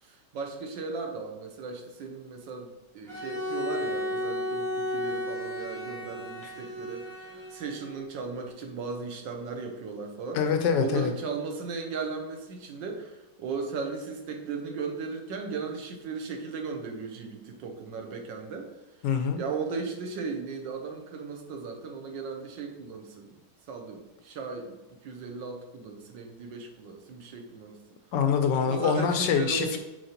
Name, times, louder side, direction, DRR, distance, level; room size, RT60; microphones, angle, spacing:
voice 1, 0.0-7.2 7.5-10.4 10.8-18.7 19.4-23.4 23.7-27.8 28.6-29.8, right 4 dB, 70° right, 3 dB, 1.4 m, -36 dB
Bowed string instrument, 3.1-8.0, left 1 dB, 15° right, 1.1 m, -33 dB
voice 2, 10.3-11.1 19.0-19.4 28.1-29.8, left 6 dB, 75° left, 6 dB, 1.1 m, -25 dB
7.7 x 4.5 x 2.9 m, 1.0 s
omnidirectional pair, 2.2 m